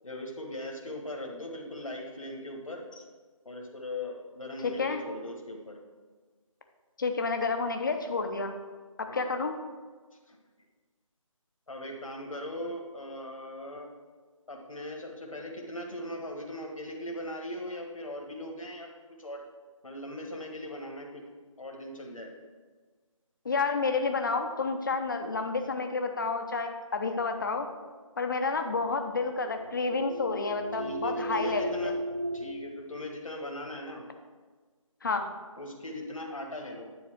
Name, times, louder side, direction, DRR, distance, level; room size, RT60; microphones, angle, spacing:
voice 1, 0.0-3.0 3.4-5.8 9.1-9.3 10.3-10.4 11.7-13.9 14.5-18.9 19.2-19.4 19.8-21.2 21.6-22.3 30.7-32.0 32.3-34.0 35.6-36.9, left 1 dB, 70° left, 1 dB, 1.5 m, -39 dB
voice 2, 4.6-5.0 7.0-8.5 9.0-9.5 23.4-27.7 28.2-31.9 35.0-35.3, left 4 dB, 35° left, 6 dB, 0.7 m, -30 dB
sound 1, 28.6-32.5, right 1 dB, 25° right, 0.3 m, -36 dB
9.6 x 4.0 x 6.1 m, 1.4 s
figure-of-eight pair, 155°, 18 cm